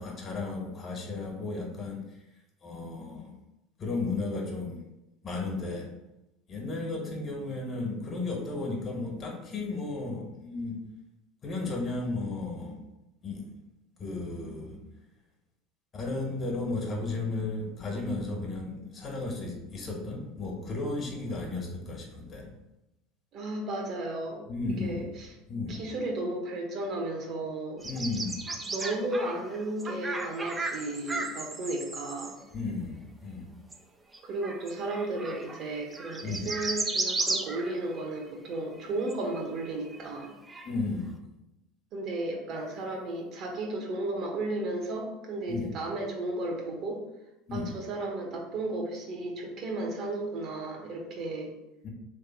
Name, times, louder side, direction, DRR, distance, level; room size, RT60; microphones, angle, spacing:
voice 1, 0.0-2.1 2.6-3.3 3.8-4.8 5.2-5.9 6.5-10.9 11.4-12.8 13.2-13.5 14.0-14.9 15.9-22.5 24.5-25.0 25.5-25.8 27.8-28.5 32.5-33.6 36.2-36.5 40.6-41.1 45.5-45.7 47.5-47.7 51.8-51.9, left 3 dB, 40° left, 0 dB, 1.5 m, -34 dB
voice 2, 23.3-24.4 24.8-25.3 25.7-27.8 28.6-32.4 34.2-40.3 41.9-47.0 47.5-51.5, right 2 dB, 50° right, 1 dB, 1.2 m, -34 dB
sound 1, 27.8-32.3 33.7-33.8 34.1-38.2 38.8-38.9 39.1-40.7, right 3 dB, 20° right, 0.6 m, -34 dB
3.5 x 3.2 x 4.6 m, 0.95 s
hypercardioid pair, 90°, 0 cm